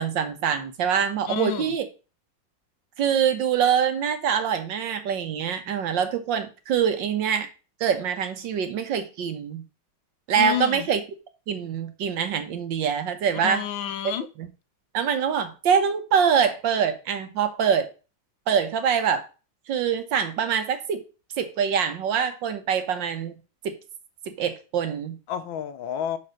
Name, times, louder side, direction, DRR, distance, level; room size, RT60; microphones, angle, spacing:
voice 1, 0.0-1.9 3.0-7.5 7.8-9.6 10.3-11.0 11.5-13.6 14.0-14.1 14.4-14.5 14.9-17.9 18.5-19.2 19.7-21.0 21.4-23.4 23.6-23.8 24.4-25.2, right 7 dB, 70° right, 1.6 m, -24 dB
voice 2, 1.3-1.8 10.3-10.9 13.4-14.3 25.3-26.2, left 10 dB, 75° left, 1.5 m, -30 dB
6.4 x 4.4 x 6.4 m
omnidirectional pair, 2.2 m